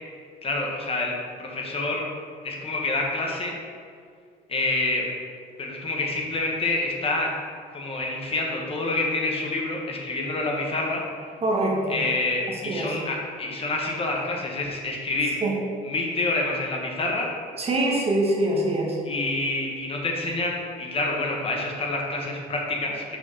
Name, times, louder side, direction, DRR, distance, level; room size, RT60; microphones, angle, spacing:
voice 1, 0.4-1.1 1.4-2.1 2.4-3.5 4.5-5.0 5.6-7.3 7.7-11.0 11.9-15.3 15.8-17.3 19.0-23.2, left 2 dB, 35° left, -1 dB, 1.2 m, -27 dB
voice 2, 11.4-12.0 12.5-13.0 15.4-15.6 17.6-19.0, right 1 dB, 35° right, -2 dB, 1.4 m, -24 dB
6.0 x 4.2 x 5.5 m, 2.1 s
cardioid pair, 110°, 17 cm